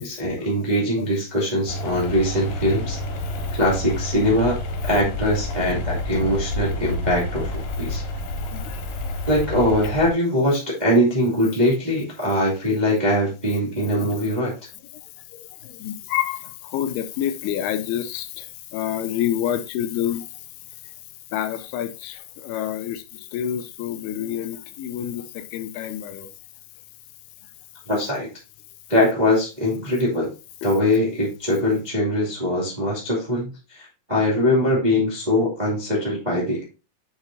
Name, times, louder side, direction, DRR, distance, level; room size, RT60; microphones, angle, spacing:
voice 1, 0.0-3.0 3.5-4.6 4.8-8.0 9.3-14.5 27.9-28.3 28.9-30.3 30.6-36.6, left 1 dB, 15° right, 2.0 m, -22 dB
sound 1, 1.7-10.1, left 1 dB, 65° left, 3.3 m, -29 dB
voice 2, 15.8-16.4 16.7-18.4 18.7-20.3 21.3-23.0 23.3-26.3, left 10 dB, 90° left, 2.7 m, -27 dB
7.9 x 7.0 x 2.7 m
omnidirectional pair, 4.6 m